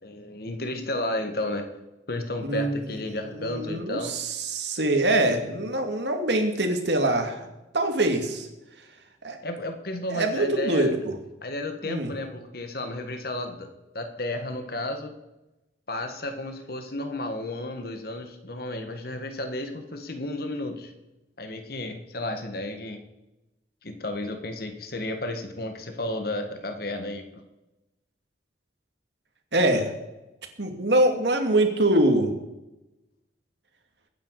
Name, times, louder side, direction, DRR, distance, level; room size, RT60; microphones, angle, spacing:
voice 1, 0.0-1.7 2.1-4.2 9.4-10.9 11.4-13.7 13.9-15.1 15.9-20.9 21.4-23.0 23.8-27.4, left 1 dB, 55° left, 6 dB, 1.7 m, -32 dB
voice 2, 2.5-2.9 3.3-7.5 7.7-8.5 9.2-9.4 10.1-11.1 11.8-12.1 29.5-29.9 30.6-32.3, right 1 dB, 75° right, 4 dB, 2.4 m, -24 dB
22.0 x 9.7 x 4.8 m, 0.98 s
head